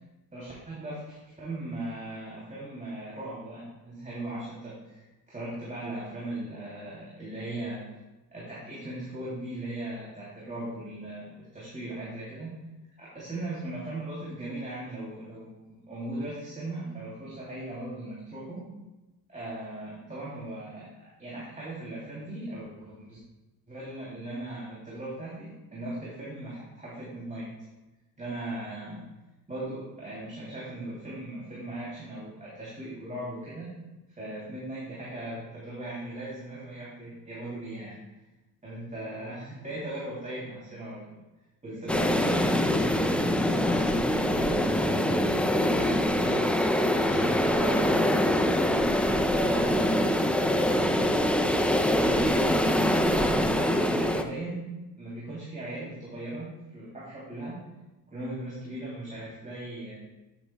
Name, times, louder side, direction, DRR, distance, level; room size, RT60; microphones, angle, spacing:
voice 1, 0.3-7.9 8.3-12.5 13.0-18.7 19.3-23.2 23.7-27.5 28.2-29.0 29.5-33.7 34.1-38.0 38.6-41.2 41.6-42.8 46.4-46.5 47.0-48.4 49.3-51.2 51.8-54.7 55.0-57.6 58.1-60.0, right 1 dB, 20° right, -7 dB, 3.1 m, -38 dB
sound 1, 41.9-54.2, left 1 dB, 5° left, 0.5 m, -24 dB
voice 2, 43.2-46.7, left 3 dB, 80° left, -3 dB, 1.5 m, -42 dB
11.0 x 8.2 x 2.3 m, 1.0 s
supercardioid pair, 85°, 41 cm